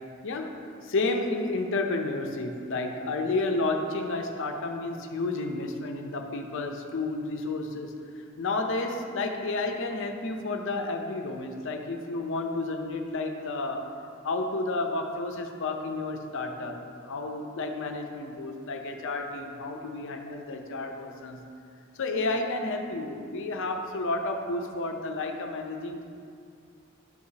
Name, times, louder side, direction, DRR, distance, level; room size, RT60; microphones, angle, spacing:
voice 1, 0.2-0.5 0.8-8.0 8.4-13.8 14.2-21.4 22.0-26.0, left 2 dB, 65° left, 4 dB, 0.6 m, -31 dB
10.5 x 4.8 x 2.8 m, 2.4 s
head